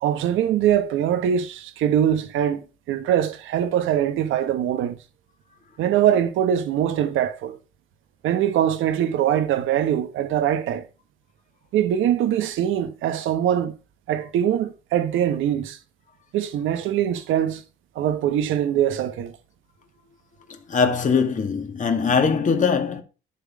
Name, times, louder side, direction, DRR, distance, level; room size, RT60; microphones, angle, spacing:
voice 1, 0.0-5.0 5.8-7.6 8.2-10.9 11.7-13.7 14.1-15.8 16.3-17.6 17.9-19.3, right 10 dB, 85° right, 1.2 m, -22 dB
voice 2, 20.5-23.0, left 5 dB, 40° left, 2.0 m, -21 dB
11.0 x 3.8 x 7.3 m
cardioid pair, 90°, 20 cm